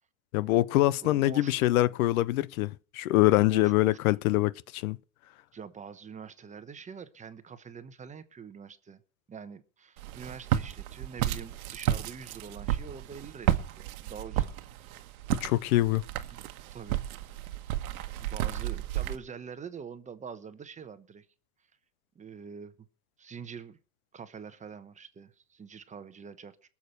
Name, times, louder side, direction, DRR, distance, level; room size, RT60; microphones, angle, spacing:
voice 1, 0.3-5.0 15.3-16.0, left 17 dB, 75° left, 0.7 m, -24 dB
voice 2, 1.0-2.0 3.5-4.0 5.5-9.0 9.3-14.5 14.8-14.9 16.3-16.4 16.7-17.1 18.2-21.3 22.1-22.9 23.2-23.8 24.1-26.6, right 6 dB, 15° right, 1.0 m, -45 dB
Walk footsteps, 10.0-19.2, right 12 dB, 80° right, 1.3 m, -32 dB
20.5 x 7.3 x 6.6 m
supercardioid pair, 120°, 43 cm